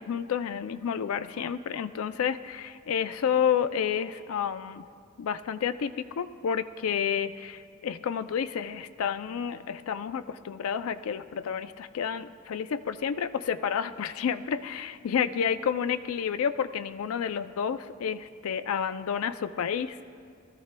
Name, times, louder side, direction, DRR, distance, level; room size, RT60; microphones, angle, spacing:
voice 1, 0.0-4.8 5.2-20.0, left 7 dB, 90° left, 10 dB, 0.4 m, -30 dB
21.5 x 14.0 x 2.2 m, 2.2 s
head